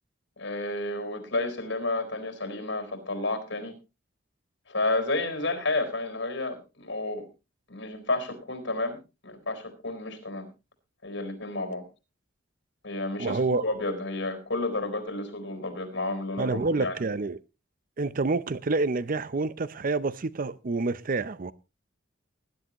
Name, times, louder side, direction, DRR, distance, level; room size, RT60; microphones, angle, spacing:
voice 1, 0.4-3.7 4.7-7.3 7.7-9.0 9.2-10.5 11.0-11.8 12.8-17.0, left 2 dB, 70° left, 4.2 m, -31 dB
voice 2, 13.2-13.6 16.4-17.4 18.0-21.5, right 3 dB, 45° right, 0.6 m, -28 dB
20.0 x 10.5 x 3.0 m
head